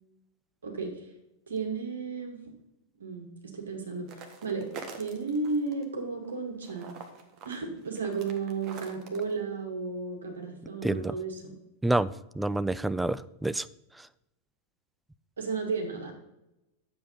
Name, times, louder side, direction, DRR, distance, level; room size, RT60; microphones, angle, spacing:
voice 1, 0.6-1.1 1.5-2.4 3.0-6.9 7.4-11.5 15.4-16.1, right 4 dB, 70° right, 3 dB, 2.3 m, -34 dB
sound 1, 4.1-5.8 6.2-9.3, right 5 dB, 35° right, 1.6 m, -45 dB
voice 2, 10.8-11.1 11.8-13.7 14.0-14.1, right 2 dB, 5° right, 15 dB, 0.4 m, -28 dB
10.5 x 7.6 x 5.6 m, 0.89 s
figure-of-eight pair, 90°, 0 cm